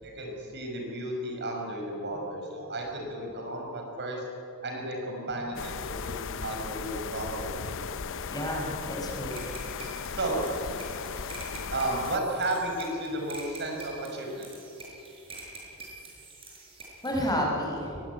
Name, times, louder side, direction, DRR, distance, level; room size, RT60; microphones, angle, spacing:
voice 1, 0.0-4.3 4.6-7.8 10.1-10.4 11.7-14.5, right 1 dB, 55° right, 1 dB, 5.6 m, -33 dB
sound 1, 5.6-12.2, left 6 dB, 60° left, 0.7 m, -37 dB
voice 2, 8.3-9.4 17.0-18.0, equal, 20° left, -1 dB, 5.2 m, -30 dB
sound 2, 9.3-17.3, right 3 dB, 25° right, 7.0 m, -47 dB
22.5 x 19.0 x 9.5 m, 2.9 s
head